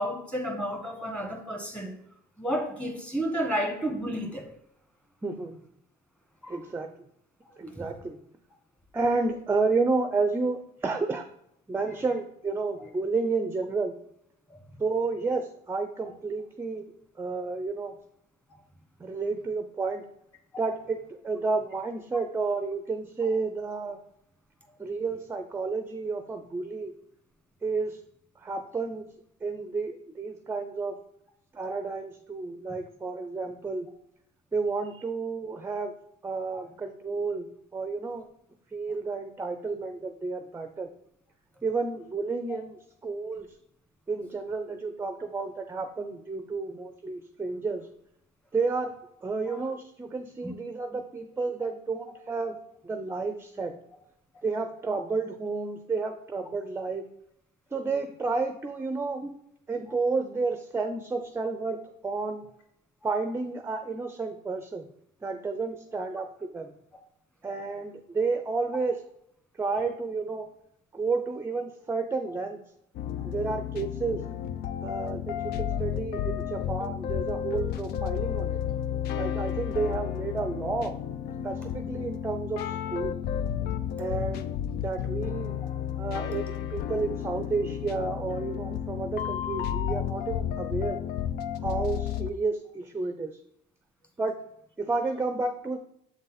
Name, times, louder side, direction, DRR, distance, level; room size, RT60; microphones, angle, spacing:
voice 1, 0.0-1.9 2.4-4.5 6.4-6.6 7.8-7.9 36.5-36.7 42.5-42.6 49.5-49.7 85.6-85.7, equal, 5° left, 3 dB, 1.5 m, -31 dB
voice 2, 5.2-5.6 6.5-6.9 7.6-8.2 8.9-11.3 11.7-13.9 14.8-16.9 17.2-18.0 19.0-20.0 20.6-21.0 21.2-24.0 24.8-26.9 27.6-28.0 28.4-29.1 29.4-31.0 31.5-33.9 34.5-35.9 36.2-38.3 38.7-40.9 41.6-43.5 44.1-47.9 48.5-49.0 49.2-52.6 52.8-53.8 54.4-57.0 57.7-59.2 59.7-61.8 62.0-62.4 63.0-64.9 65.2-66.7 67.4-69.0 69.6-70.5 70.9-72.6 73.2-74.2 74.8-78.6 79.2-80.9 81.4-83.2 84.0-84.5 84.8-85.5 86.0-91.0 91.6-93.3 94.2-94.4 94.8-95.8, right 4 dB, 15° right, 7 dB, 0.5 m, -31 dB
sound 1, 72.9-92.3, left 9 dB, 70° left, 0.4 m, -32 dB
7.5 x 4.0 x 4.0 m, 0.76 s
cardioid pair, 110°, 17 cm